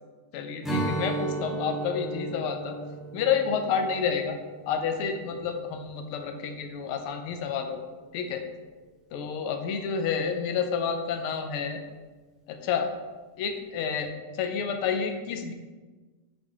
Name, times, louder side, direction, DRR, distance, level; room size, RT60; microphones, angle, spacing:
voice 1, 0.3-2.8 3.1-4.4 4.7-7.8 8.1-8.4 9.1-11.8 12.5-12.9 13.4-15.5, left 6 dB, 85° left, 6 dB, 1.6 m, -29 dB
Strum, 0.6-6.1, right 3 dB, ahead, 1.1 m, -35 dB
7.7 x 6.1 x 2.9 m, 1.3 s
omnidirectional pair, 2.4 m